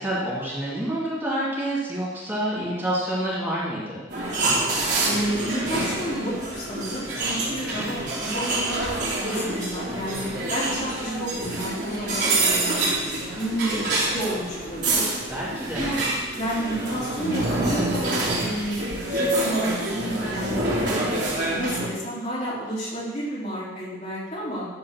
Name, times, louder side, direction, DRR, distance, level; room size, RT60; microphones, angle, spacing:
voice 1, 0.0-4.0 15.3-15.8, right 1 dB, 10° right, -8 dB, 2.2 m, -28 dB
sound 1, 4.1-21.9, right 2 dB, 60° right, 3.8 m, -26 dB
voice 2, 5.0-8.9 9.2-12.8 13.3-15.1 15.7-16.0 16.3-20.7 21.5-24.7, equal, 35° left, -7 dB, 3.5 m, -31 dB
12.0 x 4.8 x 6.1 m, 1.2 s
head